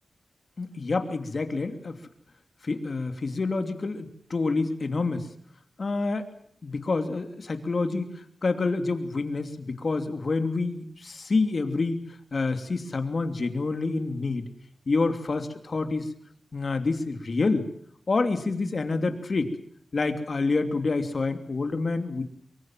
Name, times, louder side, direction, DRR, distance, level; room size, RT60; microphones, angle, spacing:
voice 1, 0.6-2.0 2.6-5.3 5.8-6.3 6.6-12.0 12.3-14.5 14.9-16.1 16.5-17.7 18.1-19.5 19.9-22.2, left 3 dB, 55° left, 8 dB, 2.8 m, -27 dB
23.5 x 23.5 x 7.6 m, 0.66 s
cardioid pair, 60°, 0 cm